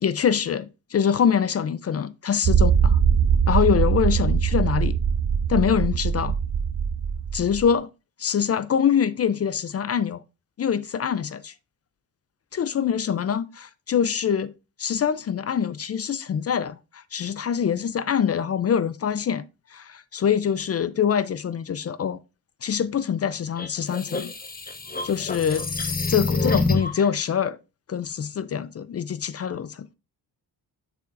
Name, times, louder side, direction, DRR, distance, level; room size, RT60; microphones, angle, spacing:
voice 1, 0.0-3.0 3.5-5.0 5.5-6.3 7.3-7.9 8.2-10.2 10.6-11.5 12.5-14.5 14.8-19.4 19.7-22.2 22.6-24.3 25.0-25.7 26.1-27.6 27.9-29.9, left 8 dB, 40° left, 0.4 m, -24 dB
sound 1, 2.4-7.7, right 7 dB, 50° right, 0.6 m, -22 dB
sound 2, 23.6-27.1, left 3 dB, 25° left, 1.0 m, -27 dB
6.9 x 6.0 x 2.5 m
cardioid pair, 95°, 39 cm